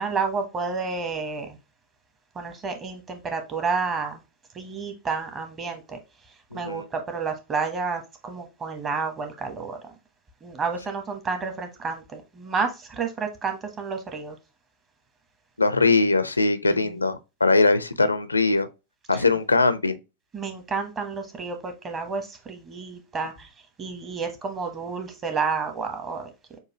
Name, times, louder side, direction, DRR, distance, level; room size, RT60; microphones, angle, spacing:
voice 1, 0.0-1.6 2.3-4.2 4.5-6.0 6.5-9.8 10.4-14.3 16.6-17.0 19.1-19.2 20.3-23.5 23.8-26.3, right 5 dB, 25° right, 1.1 m, -30 dB
voice 2, 6.5-6.9 15.6-18.7 19.1-20.0, left 3 dB, 80° left, 0.5 m, -21 dB
6.6 x 2.6 x 3.0 m
figure-of-eight pair, 90°, 0 cm